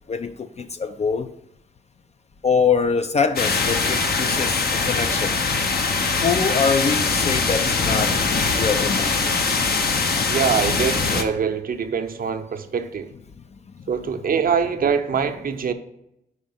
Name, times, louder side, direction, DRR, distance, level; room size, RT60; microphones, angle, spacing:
voice 1, 0.1-1.3 2.4-5.4 6.2-8.2 8.5-9.4 13.5-13.6, left 5 dB, 35° left, 0.4 m, -24 dB
sound 1, 3.4-11.2, left 4 dB, 60° left, 0.8 m, -22 dB
voice 2, 10.3-13.1 13.9-15.7, right 6 dB, 50° right, 0.6 m, -24 dB
5.0 x 4.2 x 5.5 m
cardioid pair, 60°, 18 cm